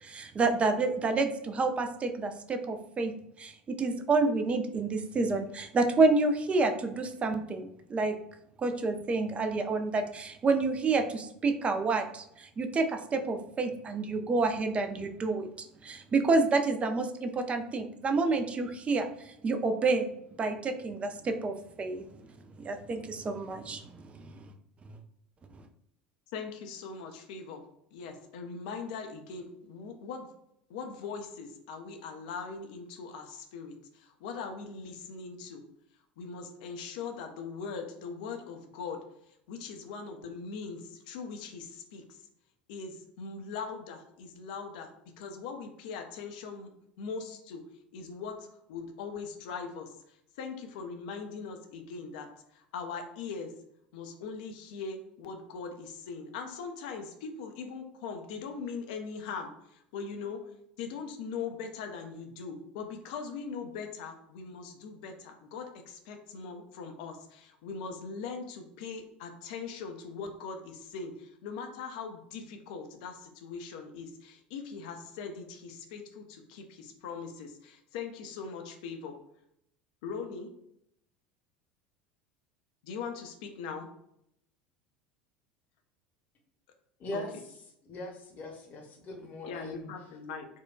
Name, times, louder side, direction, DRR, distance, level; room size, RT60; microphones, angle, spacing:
voice 1, 0.0-3.1 3.4-8.1 8.6-15.5 15.8-20.1 20.4-22.0 22.6-23.8, right 3 dB, 25° right, 6 dB, 0.4 m, -29 dB
voice 2, 26.3-27.6 27.9-30.3 30.7-35.6 36.2-39.0 39.5-42.0 42.7-44.9 45.2-46.7 47.0-47.6 47.9-53.5 53.9-60.4 60.8-79.2 80.0-80.5 82.8-83.9 87.1-87.2 89.5-90.5, left 5 dB, 60° left, 5 dB, 0.5 m, -41 dB
voice 3, 87.0-87.3 87.8-89.9, left 1 dB, 35° left, 1 dB, 0.8 m, -40 dB
4.3 x 2.2 x 2.2 m, 0.74 s
figure-of-eight pair, 70°, 5 cm